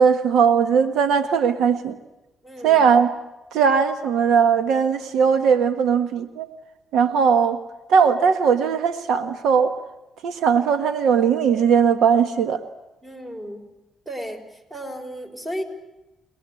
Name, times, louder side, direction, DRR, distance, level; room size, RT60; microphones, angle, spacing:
voice 1, 0.0-2.0 2.6-3.1 3.5-6.5 6.9-7.6 7.9-9.7 10.2-12.6, right 6 dB, 80° right, 9 dB, 1.4 m, -19 dB
voice 2, 2.4-2.8 13.0-13.6 14.1-14.4 14.7-15.6, equal, 20° right, 5 dB, 5.8 m, -33 dB
29.0 x 20.5 x 8.5 m, 0.99 s
cardioid pair, 90°, 0 cm